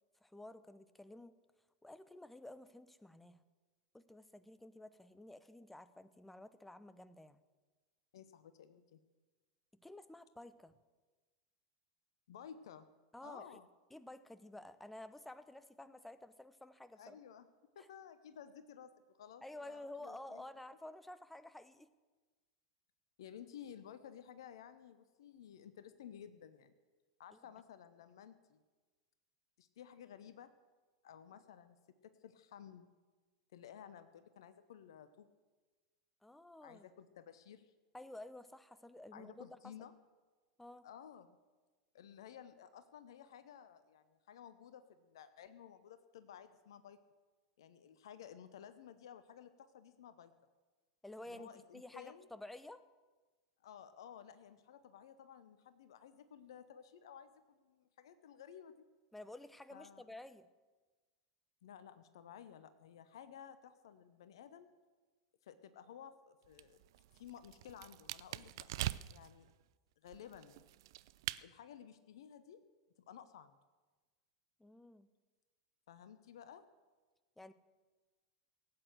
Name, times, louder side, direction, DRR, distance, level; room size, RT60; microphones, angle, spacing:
voice 1, 0.2-1.4 1.8-3.4 3.9-7.4 9.8-10.8 13.1-13.6 13.9-17.2 17.8-17.9 19.4-21.9 27.3-27.4 36.2-36.9 37.9-39.7 40.6-40.9 51.0-52.8 59.1-60.5 74.6-75.1 77.4-77.5, left 1 dB, 5° left, 14 dB, 0.8 m, -52 dB
voice 2, 8.1-9.0 12.3-12.9 13.2-13.7 17.0-17.5 17.7-20.4 23.2-26.7 27.2-28.6 29.6-30.5 31.0-31.8 32.0-32.9 33.5-35.3 36.6-37.7 39.1-39.9 40.8-41.4 41.9-47.0 47.6-50.3 51.2-52.3 53.6-58.9 59.7-60.2 61.6-64.7 65.4-66.8 67.1-68.7 69.1-69.5 70.0-70.6 71.4-72.6 73.1-73.5 75.9-76.6, left 9 dB, 65° left, 12 dB, 0.8 m, -55 dB
sound 1, 66.4-69.3 70.1-71.4, right 15 dB, 55° right, 0.4 m, -43 dB
17.5 x 8.7 x 7.9 m, 1.3 s
figure-of-eight pair, 85°, 3 cm